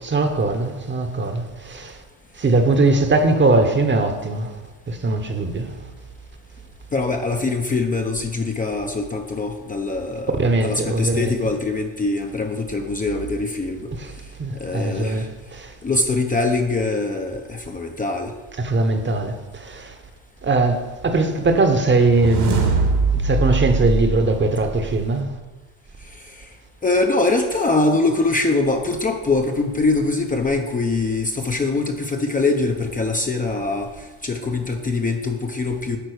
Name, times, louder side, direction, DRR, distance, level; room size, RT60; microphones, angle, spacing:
voice 1, 0.0-2.0 2.4-4.6 4.9-5.7 10.4-11.4 14.0-14.1 14.4-15.7 18.6-19.9 20.4-22.8 23.1-25.3, right 2 dB, 25° right, 1.1 m, -20 dB
voice 2, 6.9-10.3 10.6-13.9 14.6-15.2 15.8-18.3 26.8-33.9 34.2-36.0, left 3 dB, 20° left, 0.7 m, -23 dB
sound 1, 21.9-25.1, right 4 dB, 60° right, 1.8 m, -23 dB
9.1 x 4.1 x 6.5 m
supercardioid pair, 80°, 44 cm